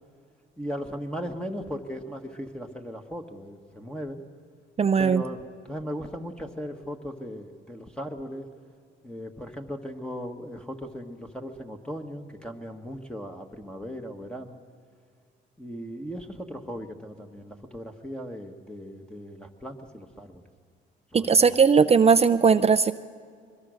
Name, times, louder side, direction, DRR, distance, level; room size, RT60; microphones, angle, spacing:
voice 1, 0.6-4.2 5.0-8.5 9.0-14.6 15.6-20.4 21.1-21.6, equal, 5° left, 4 dB, 1.5 m, -37 dB
voice 2, 4.8-5.2 21.1-22.9, right 5 dB, 30° right, 12 dB, 0.5 m, -19 dB
23.0 x 21.5 x 6.4 m, 2.1 s
cardioid pair, 90°, 20 cm